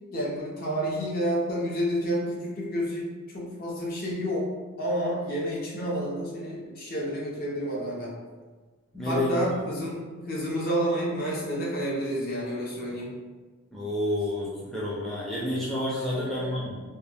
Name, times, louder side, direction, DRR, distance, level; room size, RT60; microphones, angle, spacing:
voice 1, 0.1-4.5 4.8-8.1 9.1-13.1 16.2-16.6, equal, 45° left, -4 dB, 0.6 m, -30 dB
voice 2, 8.9-9.3 13.7-16.8, left 1 dB, ahead, -8 dB, 0.4 m, -29 dB
2.2 x 2.1 x 3.3 m, 1.4 s
head